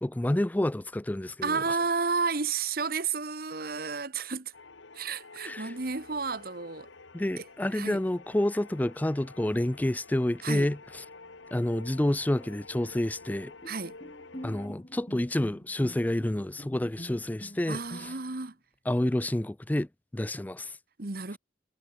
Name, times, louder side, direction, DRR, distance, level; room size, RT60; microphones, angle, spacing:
voice 1, 0.0-1.6 5.4-5.7 7.1-11.0 11.5-13.5 14.4-18.1 18.9-20.8, left 1 dB, 10° left, 0.3 m, -29 dB
voice 2, 1.4-4.5 4.9-6.9 7.4-7.5 7.7-8.0 10.4-10.7 13.7-14.0 17.7-18.5 21.0-21.4, right 4 dB, 50° right, 1.2 m, -31 dB
sound 1, 4.5-14.7, left 3 dB, 80° left, 1.7 m, -50 dB
Bowed string instrument, 13.6-18.5, equal, 30° left, 3.5 m, -46 dB
head